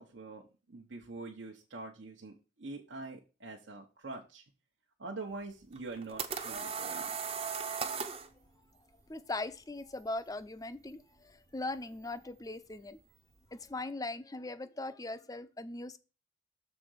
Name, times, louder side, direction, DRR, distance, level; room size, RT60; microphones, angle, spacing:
voice 1, 0.0-4.4 5.0-7.1, right 3 dB, 75° right, -1 dB, 1.1 m, -45 dB
sound 1, 5.8-8.3, right 6 dB, 30° right, 0.7 m, -37 dB
voice 2, 9.1-13.0 13.5-16.0, left 2 dB, 20° left, 12 dB, 0.5 m, -40 dB
6.8 x 3.9 x 6.4 m, 0.31 s
head